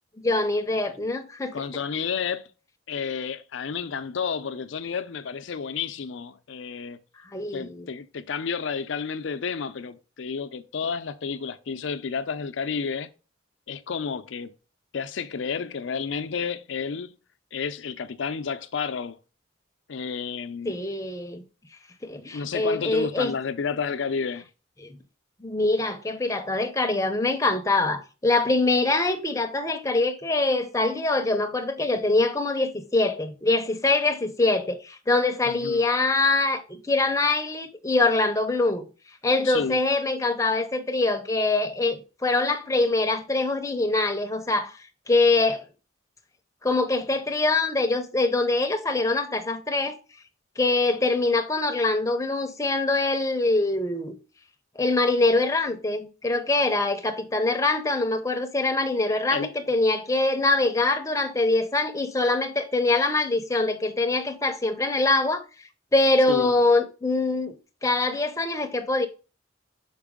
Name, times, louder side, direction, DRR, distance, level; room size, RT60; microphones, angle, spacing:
voice 1, 0.2-1.6 7.3-7.9 20.7-21.4 22.0-23.4 24.8-24.9 25.4-38.8 39.2-44.8 45.1-45.6 46.6-50.0 50.6-54.2 54.8-65.4 65.9-67.6 67.8-69.1, left 2 dB, 15° left, 0.6 m, -24 dB
voice 2, 1.5-2.5 2.9-7.0 7.5-13.1 13.7-14.5 14.9-17.1 17.5-19.2 19.9-20.8 22.3-24.5 35.4-35.8 39.4-39.8 59.3-59.5 66.3-66.5, left 6 dB, 70° left, 0.5 m, -31 dB
5.9 x 4.6 x 3.6 m
head